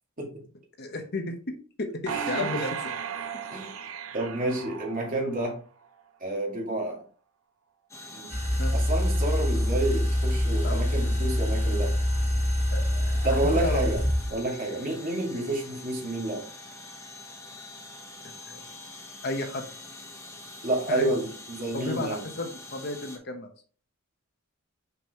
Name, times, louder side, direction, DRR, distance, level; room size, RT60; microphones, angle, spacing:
voice 1, 0.8-2.9 8.6-8.7 10.6-10.8 12.7-13.8 18.2-18.6 19.2-19.7 20.9-21.1 21.7-23.5, left 2 dB, 50° left, 5 dB, 1.0 m, -33 dB
voice 2, 2.1-2.6 3.5-3.7 4.1-5.6 6.2-7.1 8.1-8.4 8.7-12.0 13.2-14.0 14.3-16.5 20.6-22.2, right 2 dB, 40° right, -1 dB, 2.3 m, -29 dB
sound 1, 2.1-5.5 6.0-6.1, right 7 dB, 75° right, 0.7 m, -35 dB
sound 2, 7.9-23.2, left 2 dB, 15° left, 1.1 m, -45 dB
sound 3, 8.3-14.4, equal, 10° right, 3.3 m, -25 dB
5.9 x 5.3 x 3.0 m, 0.41 s
head